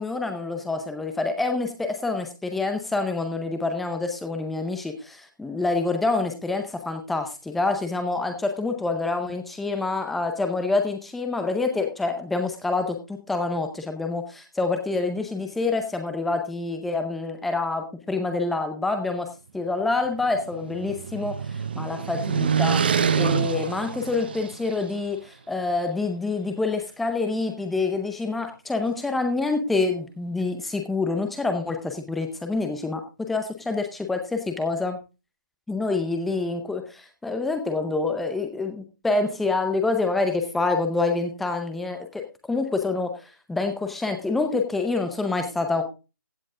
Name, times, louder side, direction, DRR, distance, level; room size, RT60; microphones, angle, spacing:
voice 1, 0.0-19.3 19.5-21.4 21.8-35.0 35.7-43.1 43.5-45.8, left 3 dB, ahead, 6 dB, 0.6 m, -27 dB
sound 1, 20.1-24.9, right 6 dB, 30° right, 0.8 m, -26 dB
15.5 x 7.7 x 3.6 m, 0.30 s
hypercardioid pair, 175°, 11 cm